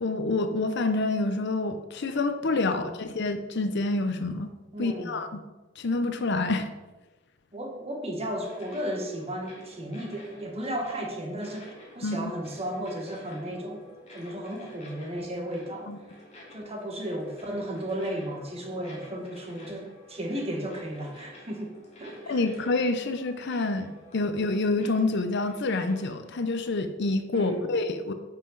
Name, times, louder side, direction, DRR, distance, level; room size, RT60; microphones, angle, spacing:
voice 1, 0.0-4.5 4.8-5.4 5.8-6.7 12.0-12.2 15.9-16.0 22.3-28.1, left 2 dB, 60° left, 9 dB, 0.7 m, -27 dB
voice 2, 2.6-2.9 4.7-5.1 7.5-13.9 14.1-15.9 16.5-22.4 27.3-27.7, right 1 dB, 30° right, 1 dB, 1.6 m, -34 dB
sound 1, 8.4-26.7, left 1 dB, 35° left, 2.5 m, -51 dB
10.0 x 5.8 x 4.0 m, 1.1 s
head